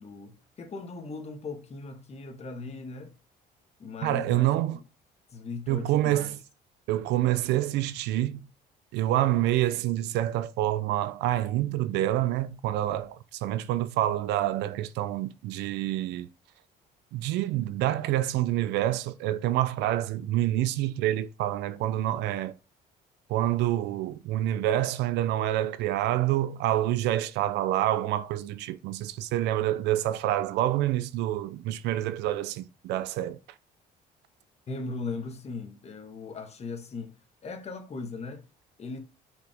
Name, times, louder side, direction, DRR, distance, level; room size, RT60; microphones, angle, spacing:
voice 1, 0.0-3.1 3.8-4.5 5.3-6.4 34.7-37.1 37.4-38.5 38.8-39.0, left 4 dB, 40° left, 1.6 m, -38 dB
voice 2, 4.0-4.8 5.7-6.4 6.9-8.5 8.9-16.3 17.1-22.5 23.3-33.4, right 13 dB, 85° right, 0.6 m, -27 dB
6.2 x 5.3 x 3.5 m
cardioid pair, 110°, 17 cm